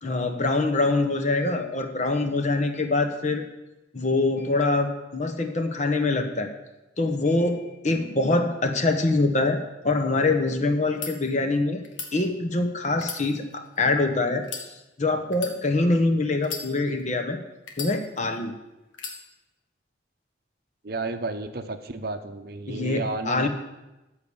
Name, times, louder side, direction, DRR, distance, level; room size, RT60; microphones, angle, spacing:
voice 1, 0.0-3.4 3.9-6.5 7.0-11.8 12.1-14.4 15.0-17.4 17.8-18.5 22.7-23.5, left 2 dB, 40° left, 6 dB, 0.9 m, -24 dB
sound 1, 10.8-11.1 11.8-12.1 12.9-13.9 14.4-14.7 15.3-15.6 16.4-17.1 17.7-18.4 18.9-19.2, left 5 dB, 80° left, 1.6 m, -36 dB
voice 2, 20.8-23.5, right 3 dB, 50° right, 8 dB, 0.7 m, -32 dB
14.0 x 4.9 x 7.0 m, 1.0 s
head